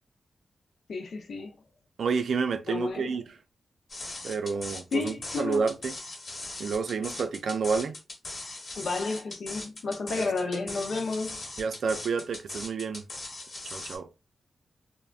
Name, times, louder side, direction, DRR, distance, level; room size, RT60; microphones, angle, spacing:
voice 1, 0.9-1.6 2.7-3.2 4.9-5.6 8.7-11.4, left 3 dB, 85° left, 0.7 m, -31 dB
voice 2, 2.0-3.2 4.2-6.0 6.6-8.0 10.2-10.3 11.6-13.0 13.6-14.1, right 5 dB, 80° right, 0.4 m, -29 dB
sound 1, 3.9-14.0, left 2 dB, 50° left, 1.2 m, -39 dB
3.3 x 2.1 x 2.4 m
wide cardioid pair, 140°, 0 cm